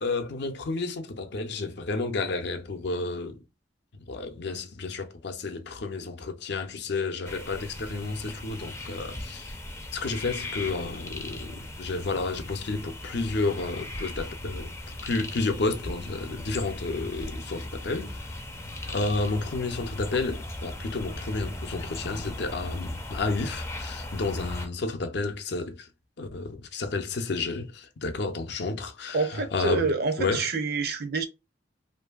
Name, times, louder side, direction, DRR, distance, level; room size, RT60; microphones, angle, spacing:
voice 1, 0.0-3.4 4.1-9.5 9.9-18.2 18.9-25.9 26.2-29.9 30.2-30.4, left 3 dB, 60° left, 0.6 m, -31 dB
sound 1, 7.2-24.7, left 1 dB, 15° left, 0.5 m, -38 dB
voice 2, 29.1-31.2, right 4 dB, 55° right, 0.6 m, -27 dB
2.7 x 2.6 x 2.3 m
head